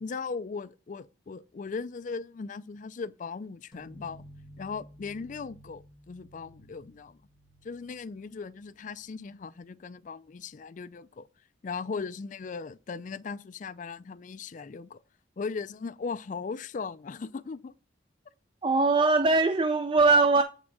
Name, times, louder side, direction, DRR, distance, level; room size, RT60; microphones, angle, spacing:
voice 1, 0.0-4.2 4.6-7.2 7.6-11.3 11.6-15.0 15.4-17.7, left 5 dB, 45° left, 0.4 m, -38 dB
sound 1, 3.7-9.2, equal, 25° left, 1.5 m, -53 dB
voice 2, 18.6-20.4, right 3 dB, 25° right, 0.4 m, -21 dB
8.2 x 3.6 x 6.0 m
head